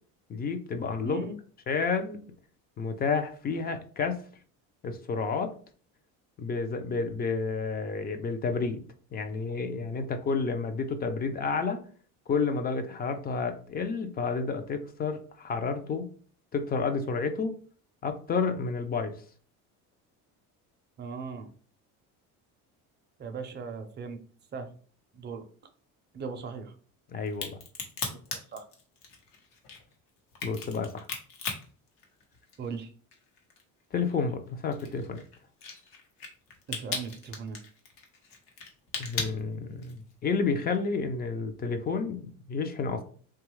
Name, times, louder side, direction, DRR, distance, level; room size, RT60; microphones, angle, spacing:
voice 1, 0.3-1.3 1.7-2.2 2.8-4.2 4.8-5.5 6.4-8.8 9.1-11.8 12.3-16.1 16.5-17.5 18.0-19.1 27.1-27.6 30.4-31.1 33.9-35.2 39.0-43.0, left 4 dB, 30° left, 8 dB, 0.4 m, -30 dB
voice 2, 1.0-1.4 21.0-21.5 23.2-24.2 24.5-24.7 25.1-25.5 26.1-26.7 28.5-28.6 32.6-32.9 36.7-37.6, right 5 dB, 30° right, 7 dB, 0.5 m, -38 dB
Crack, 27.3-32.8 33.1-40.1, left 5 dB, 80° left, 1.0 m, -38 dB
2.9 x 2.3 x 3.1 m, 0.43 s
cardioid pair, 115°, 34 cm